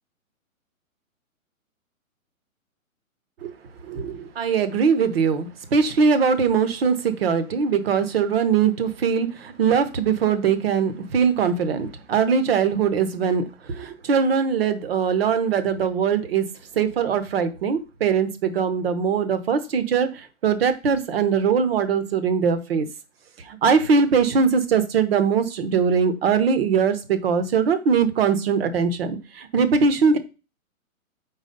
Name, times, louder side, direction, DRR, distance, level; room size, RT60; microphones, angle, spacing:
voice 1, 3.8-16.5 16.8-22.9 23.5-30.2, right 6 dB, 45° right, 11 dB, 0.8 m, -21 dB
4.7 x 4.0 x 5.1 m, 0.32 s
hypercardioid pair, 160°, 42 cm